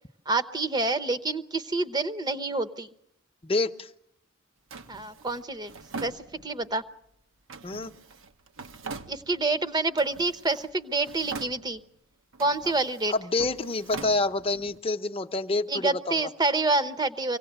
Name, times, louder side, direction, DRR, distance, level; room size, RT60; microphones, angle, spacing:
voice 1, 0.3-2.9 4.9-5.7 6.0-6.8 9.1-11.8 12.4-13.1 15.7-17.4, right 2 dB, 20° right, 11 dB, 0.8 m, -27 dB
voice 2, 3.4-3.9 7.6-7.9 13.1-16.3, left 2 dB, 30° left, 9 dB, 0.8 m, -28 dB
Drawer open or close, 4.7-6.8 7.5-9.6 9.9-10.7 11.0-12.0 12.3-14.8, right 4 dB, 80° right, 1.1 m, -42 dB
24.5 x 17.5 x 8.1 m, 0.78 s
head